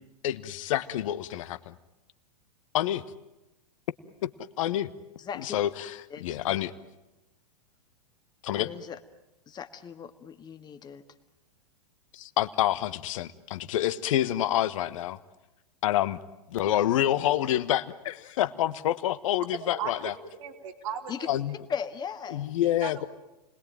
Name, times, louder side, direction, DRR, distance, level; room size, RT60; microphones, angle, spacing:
voice 1, 0.2-1.7 2.7-3.0 4.2-4.3 4.6-4.9 5.5-5.9 6.2-6.7 8.4-8.7 12.1-15.2 15.8-16.2 16.5-20.1 21.3-21.5 22.3-23.1, left 12 dB, 55° left, 13 dB, 1.2 m, -27 dB
voice 2, 5.2-5.6 6.1-6.5 8.6-9.0 9.5-11.0 21.1-21.3 21.7-22.5, left 7 dB, 20° left, 8 dB, 1.8 m, -38 dB
voice 3, 19.5-20.1 20.4-21.1 22.6-23.1, right 8 dB, 55° right, 6 dB, 3.5 m, -36 dB
29.5 x 21.0 x 9.2 m, 0.98 s
figure-of-eight pair, 100°, 20 cm